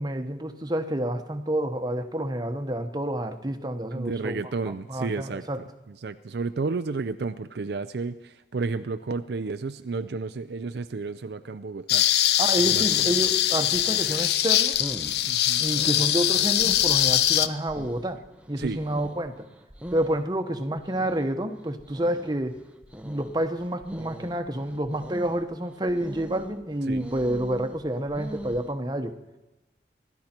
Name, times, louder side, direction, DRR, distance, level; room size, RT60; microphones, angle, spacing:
voice 1, 0.0-4.4 4.9-5.6 12.4-14.8 15.6-19.5 19.9-22.6 23.0-29.2, right 1 dB, 25° right, 6 dB, 1.0 m, -29 dB
voice 2, 3.9-12.1 12.6-12.8 15.2-15.7 18.6-18.8 26.9-27.1, right 4 dB, 65° right, 10 dB, 0.5 m, -32 dB
sound 1, 11.9-17.5, left 12 dB, 65° left, 0.5 m, -22 dB
sound 2, 12.5-28.7, equal, 5° right, 0.8 m, -42 dB
25.5 x 12.0 x 4.5 m, 1.0 s
head